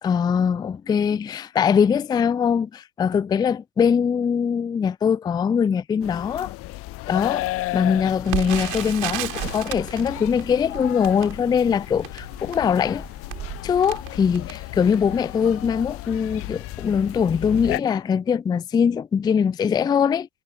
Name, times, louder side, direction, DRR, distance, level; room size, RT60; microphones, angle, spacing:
voice 1, 0.0-6.5 7.1-13.0 13.6-20.3, left 7 dB, 10° left, 0.5 m, -22 dB
sound 1, 6.0-17.8, left 18 dB, 35° left, 0.8 m, -34 dB
Crackle, 8.2-15.2 15.8-15.9 16.2-16.5 17.1-17.3 17.6-17.7, right 20 dB, 45° right, 7.5 m, -34 dB
figure-of-eight pair, 80°, 42 cm